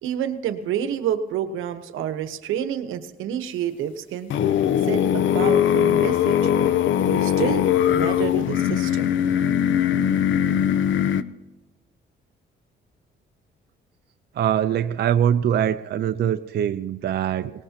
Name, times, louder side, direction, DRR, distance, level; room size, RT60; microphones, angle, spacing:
voice 1, 0.0-4.3 4.9-6.4 7.1-9.1, right 9 dB, 90° right, 9 dB, 1.1 m, -28 dB
sound 1, 4.3-11.2, left 9 dB, 75° left, 0.6 m, -20 dB
voice 2, 14.4-17.5, right 9 dB, 55° right, 9 dB, 0.6 m, -23 dB
22.0 x 19.0 x 2.9 m, 1.1 s
cardioid pair, 90°, 20 cm